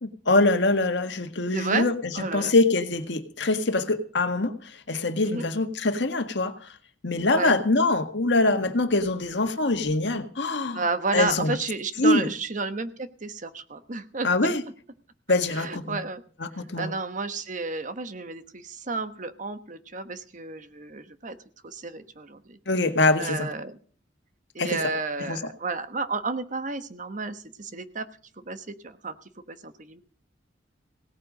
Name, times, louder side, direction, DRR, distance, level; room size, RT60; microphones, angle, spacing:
voice 1, 0.0-6.7 7.0-10.8 11.1-11.5 12.0-12.3 14.2-14.6 15.3-16.0 16.4-16.9 22.7-23.5 24.6-24.8 25.3-25.4, left 2 dB, 70° left, 7 dB, 1.7 m, -24 dB
voice 2, 1.5-1.9 2.1-2.5 5.2-5.5 7.3-7.6 10.7-14.5 15.5-16.2 16.8-21.4 21.6-22.6 23.2-23.8 24.5-28.1 28.4-29.1 29.5-30.0, right 3 dB, 45° right, 10 dB, 1.2 m, -31 dB
17.5 x 8.9 x 6.4 m, 0.43 s
head